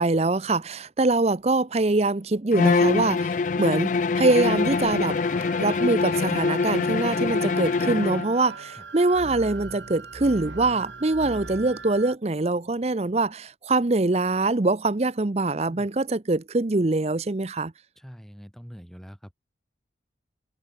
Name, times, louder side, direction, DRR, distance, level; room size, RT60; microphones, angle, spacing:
voice 1, 0.0-5.2 5.6-17.7, right 2 dB, 35° right, 0.7 m, -24 dB
Bowed string instrument, 2.5-8.3, left 4 dB, 45° left, 0.4 m, -24 dB
sound 1, 4.4-12.2, right 3 dB, 85° right, 2.7 m, -41 dB
voice 2, 18.0-19.3, equal, ahead, 5.1 m, -44 dB
head